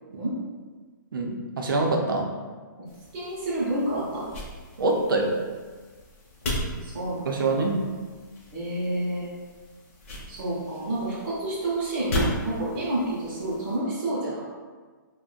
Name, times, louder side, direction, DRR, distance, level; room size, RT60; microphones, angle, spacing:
voice 1, 1.1-2.3 4.8-5.3 7.3-7.8, right 2 dB, 80° right, 1 dB, 0.6 m, -25 dB
sound 1, 2.9-13.8, equal, 40° left, 0.7 m, -36 dB
voice 2, 3.1-4.3 6.7-7.5 8.5-9.3 10.3-14.4, right 1 dB, 30° right, -9 dB, 0.6 m, -29 dB
2.4 x 2.1 x 3.7 m, 1.4 s
hypercardioid pair, 175°, 11 cm